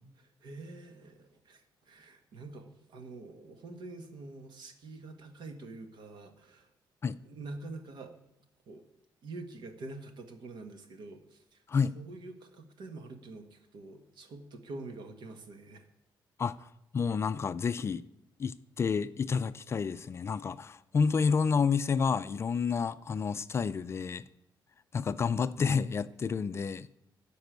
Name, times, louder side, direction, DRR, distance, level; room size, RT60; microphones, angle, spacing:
voice 1, 0.2-6.7 7.2-8.1 8.7-8.8 9.2-11.6 11.9-15.8, right 2 dB, 65° right, 1.6 m, -46 dB
voice 2, 16.4-18.0 18.4-24.2 24.9-26.9, left 5 dB, 30° left, 0.4 m, -30 dB
13.5 x 5.3 x 9.2 m
cardioid pair, 145°, 8 cm